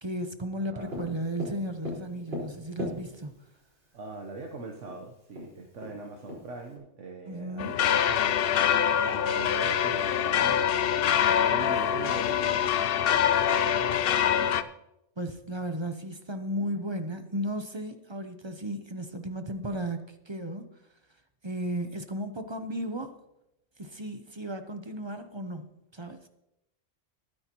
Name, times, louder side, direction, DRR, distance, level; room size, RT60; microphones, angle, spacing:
voice 1, 0.0-3.3 7.3-7.7 15.2-20.7 21.4-23.2 23.8-26.2, right 1 dB, 25° right, 0.7 m, -35 dB
voice 2, 0.7-1.1 3.9-8.6 8.9-14.7, right 3 dB, 75° right, 1.3 m, -42 dB
Tap, 0.9-3.5 4.5-4.6 4.9-5.0 5.3-6.8, left 2 dB, 55° right, 4.9 m, -38 dB
sound 1, 7.6-14.6, left 9 dB, 60° left, 0.7 m, -25 dB
20.5 x 9.7 x 3.0 m
omnidirectional pair, 1.3 m